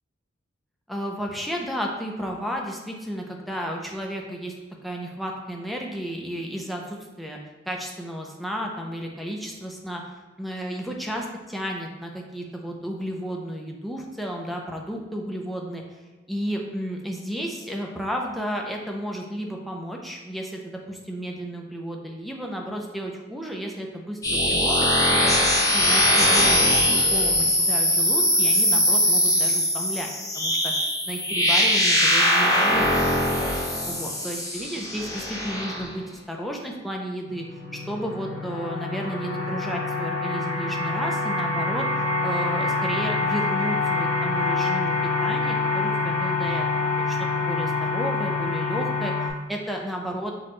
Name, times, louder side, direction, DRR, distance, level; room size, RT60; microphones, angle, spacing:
voice 1, 0.9-4.5 4.8-7.4 7.6-10.0 10.4-16.0 16.3-25.3 25.7-30.7 31.1-33.4 33.9-37.4 37.9-41.9 42.2-44.9 45.2-50.3, equal, ahead, 0 dB, 0.4 m, -33 dB
sound 1, 24.2-35.9, left 1 dB, 15° left, 0.8 m, -21 dB
sound 2, 37.3-49.3, left 3 dB, 90° left, 0.7 m, -26 dB
5.8 x 2.2 x 3.0 m, 1.2 s
head